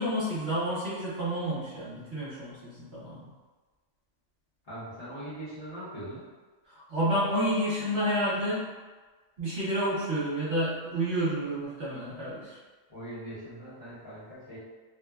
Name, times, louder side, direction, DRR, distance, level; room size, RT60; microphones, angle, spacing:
voice 1, 0.0-3.3 6.7-8.7 9.4-12.6, equal, 55° right, -9 dB, 1.0 m, -30 dB
voice 2, 4.6-6.2 12.9-14.6, right 1 dB, 45° left, -11 dB, 1.2 m, -41 dB
2.9 x 2.1 x 2.3 m, 1.3 s
omnidirectional pair, 1.4 m